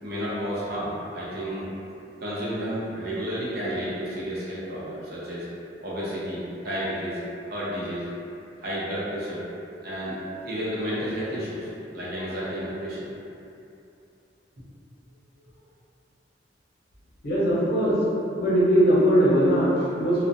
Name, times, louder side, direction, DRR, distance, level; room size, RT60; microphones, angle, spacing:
voice 1, 0.0-1.8 2.2-5.5 5.8-7.2 7.5-8.0 8.6-9.4 9.8-13.1, equal, 60° right, -8 dB, 0.7 m, -31 dB
voice 2, 17.2-18.0 18.4-20.2, equal, 60° left, -9 dB, 0.8 m, -20 dB
2.3 x 2.1 x 2.5 m, 2.7 s
head